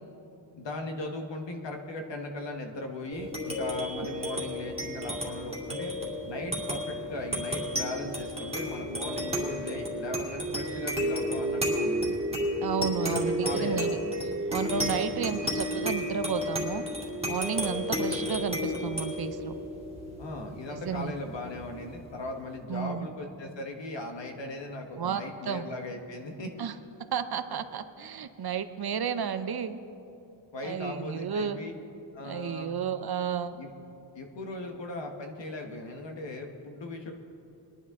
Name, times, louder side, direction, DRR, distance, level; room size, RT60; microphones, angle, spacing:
voice 1, 0.6-5.9 6.2-12.2 13.0-13.9 20.2-26.5 30.5-31.7 32.1-32.7 33.6-33.7 34.1-37.1, left 2 dB, 65° left, 4 dB, 1.3 m, -38 dB
sound 1, 3.1-22.0, equal, 15° right, 2.2 m, -32 dB
voice 2, 12.6-14.0 14.5-16.8 17.2-19.5 20.8-21.1 22.7-23.1 25.0-25.7 26.6-26.7 27.1-29.8 30.6-31.6 32.2-33.6, right 7 dB, 55° right, 11 dB, 0.6 m, -32 dB
21.5 x 10.5 x 3.6 m, 2.8 s
wide cardioid pair, 120°, 46 cm